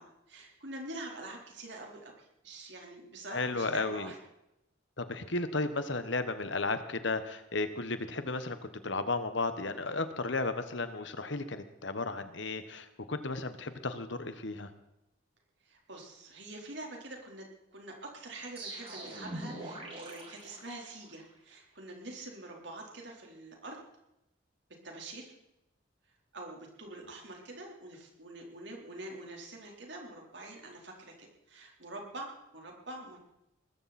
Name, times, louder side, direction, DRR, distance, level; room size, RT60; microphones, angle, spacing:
voice 1, 0.0-4.2 15.7-23.8 24.8-25.3 26.3-33.2, right 2 dB, 60° right, 0 dB, 4.1 m, -45 dB
voice 2, 3.3-4.1 5.0-8.6 8.8-14.7, left 3 dB, 65° left, 10 dB, 1.3 m, -34 dB
sound 1, 18.6-21.3, right 1 dB, 30° right, 7.9 m, -43 dB
20.0 x 14.5 x 4.4 m, 0.86 s
head